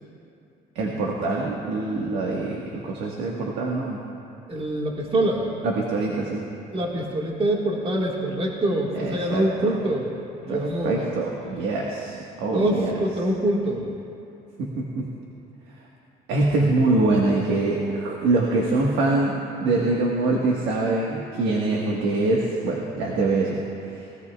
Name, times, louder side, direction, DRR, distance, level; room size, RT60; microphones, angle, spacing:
voice 1, 0.7-4.0 5.6-6.5 8.9-9.8 10.5-12.9 14.6-15.0 16.3-23.6 23.9-24.0, right 2 dB, 90° right, -2 dB, 1.5 m, -24 dB
voice 2, 4.5-5.5 6.7-10.1 10.4-11.0 12.5-13.9, right 1 dB, 35° right, -2 dB, 1.7 m, -25 dB
20.5 x 16.5 x 2.4 m, 2.7 s
cardioid pair, 110°, 17 cm